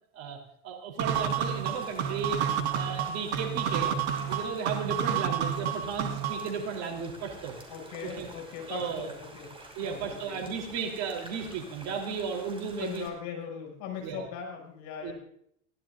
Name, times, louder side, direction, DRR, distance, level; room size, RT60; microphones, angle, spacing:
voice 1, 0.6-2.4 2.7-4.0 4.3-7.6 8.0-8.3 8.7-9.1 9.8-13.1 14.0-14.2 15.0-15.1, right 6 dB, 45° right, 2 dB, 3.7 m, -34 dB
sound 1, 1.0-6.5, right 8 dB, 60° right, 1.7 m, -30 dB
sound 2, 1.1-13.1, right 2 dB, 15° right, 5.7 m, -49 dB
voice 2, 7.7-9.5 9.8-10.4 12.8-15.1, left 7 dB, 50° left, 1 dB, 7.1 m, -39 dB
23.5 x 16.5 x 2.6 m, 0.68 s
hypercardioid pair, 85°, 37 cm